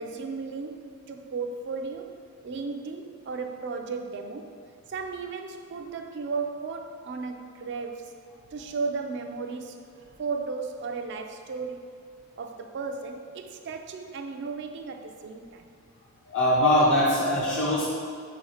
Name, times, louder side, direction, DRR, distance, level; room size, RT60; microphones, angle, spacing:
voice 1, 0.0-2.2 2.4-4.5 4.9-8.1 8.5-11.8 12.4-15.7, right 4 dB, 50° right, 5 dB, 0.3 m, -35 dB
voice 2, 16.3-17.9, left 1 dB, 50° left, -6 dB, 0.6 m, -22 dB
5.5 x 4.2 x 4.8 m, 2.2 s
head